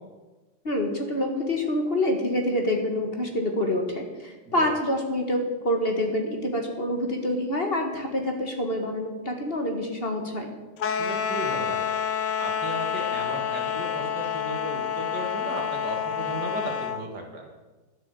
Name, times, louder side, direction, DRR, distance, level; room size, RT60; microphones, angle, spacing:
voice 1, 0.6-10.5, left 1 dB, 35° left, 3 dB, 1.5 m, -27 dB
sound 1, 10.8-17.0, left 8 dB, 70° left, 1.4 m, -28 dB
voice 2, 10.9-12.0 12.4-17.5, right 1 dB, 60° right, 1 dB, 2.7 m, -35 dB
11.5 x 7.4 x 8.0 m, 1.2 s
omnidirectional pair, 2.1 m